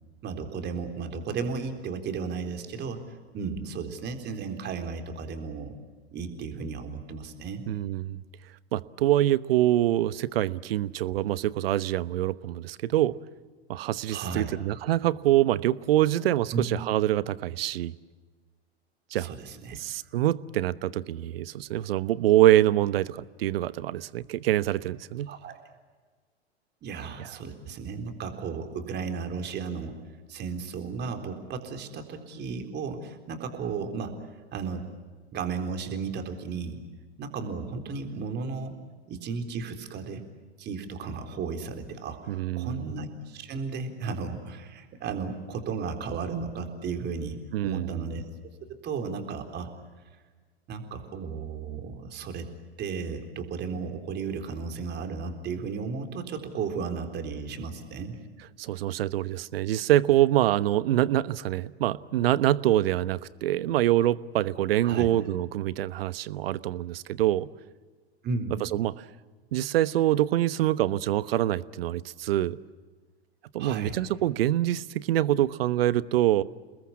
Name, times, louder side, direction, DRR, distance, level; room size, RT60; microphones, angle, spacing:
voice 1, 0.2-5.7 6.1-7.6 14.1-14.6 16.5-16.6 19.2-19.8 25.3-25.6 26.8-30.0 30.3-34.2 34.5-34.9 35.3-36.8 37.2-38.8 39.1-40.2 40.6-47.4 47.6-48.2 48.7-49.7 50.7-52.5 52.8-58.1 64.8-65.1 68.2-68.6 73.6-73.9, right 5 dB, 30° right, 6 dB, 3.9 m, -34 dB
voice 2, 7.7-8.2 8.7-13.1 13.7-17.9 19.1-19.3 19.8-25.3 42.3-42.9 47.5-48.1 58.6-67.5 68.6-69.0 69.5-72.6 73.5-76.4, right 13 dB, 60° right, 17 dB, 1.1 m, -25 dB
29.5 x 20.5 x 8.5 m, 1.4 s
hypercardioid pair, 100°, 33 cm